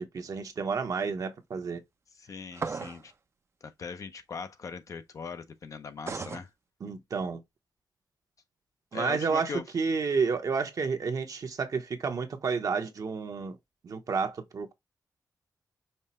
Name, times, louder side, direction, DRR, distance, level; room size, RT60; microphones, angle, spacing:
voice 1, 0.0-1.8 6.8-7.4 8.9-13.6 13.8-14.7, right 5 dB, 55° right, 0.9 m, -30 dB
voice 2, 2.2-3.1 3.6-6.5 8.9-9.6, left 5 dB, 50° left, 0.5 m, -40 dB
sound 1, 2.5-3.1 6.1-6.4, right 5 dB, 40° right, 0.5 m, -35 dB
5.5 x 2.1 x 4.2 m
wide cardioid pair, 110°, 7 cm